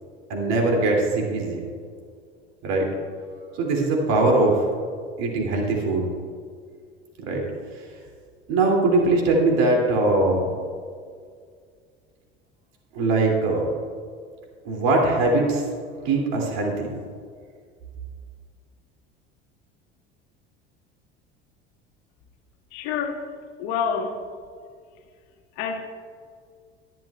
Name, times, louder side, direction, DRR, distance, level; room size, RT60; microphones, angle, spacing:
voice 1, 0.3-1.7 2.6-2.9 3.6-4.6 5.2-6.1 7.3-7.4 8.5-10.5 12.9-13.7 14.6-15.6 16.0-16.9, right 2 dB, 60° right, -1 dB, 2.8 m, -21 dB
voice 2, 22.7-23.2 23.6-24.2 25.6-25.9, left 6 dB, 65° left, 4 dB, 1.6 m, -27 dB
22.5 x 7.6 x 2.4 m, 2.1 s
hypercardioid pair, 70°, 30 cm